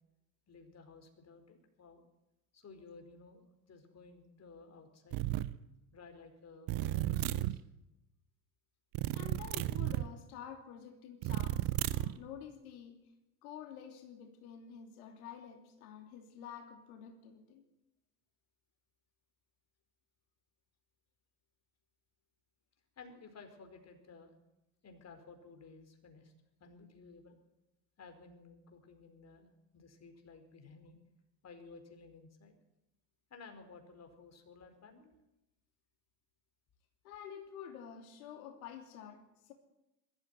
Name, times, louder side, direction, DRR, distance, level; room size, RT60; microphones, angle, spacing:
voice 1, 0.5-2.0 2.5-5.2 5.9-7.6 23.0-24.3 24.8-26.3 26.6-27.4 28.0-31.0 31.4-32.6 33.3-35.1, left 4 dB, 35° left, 5 dB, 4.9 m, -55 dB
sound 1, 5.1-5.5 6.7-7.6 8.9-10.1 11.2-12.2, right 16 dB, 45° right, 1.0 m, -33 dB
voice 2, 9.1-13.0 13.4-17.6 37.0-39.5, left 8 dB, 65° left, 4 dB, 3.0 m, -49 dB
22.0 x 13.5 x 9.4 m, 0.95 s
figure-of-eight pair, 60°, 47 cm